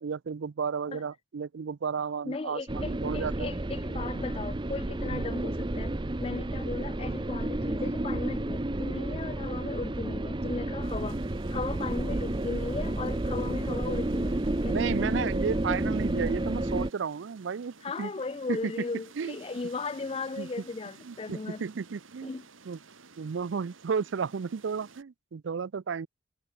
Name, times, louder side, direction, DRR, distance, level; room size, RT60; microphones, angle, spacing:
voice 1, 0.0-3.5 5.1-5.3 14.7-18.1 18.5-18.7 19.2-19.4 20.4-20.5 21.0-22.3 22.7-22.8 23.2-26.1, right 6 dB, 70° right, 0.4 m, -33 dB
voice 2, 2.2-5.9 6.2-11.2 11.5-14.8 15.0-15.1 17.8-21.6 22.2-22.4, left 3 dB, 30° left, 0.4 m, -36 dB
sound 1, 2.7-16.9, right 1 dB, 25° right, 0.6 m, -31 dB
sound 2, 10.8-25.0, right 4 dB, 90° right, 2.2 m, -54 dB
head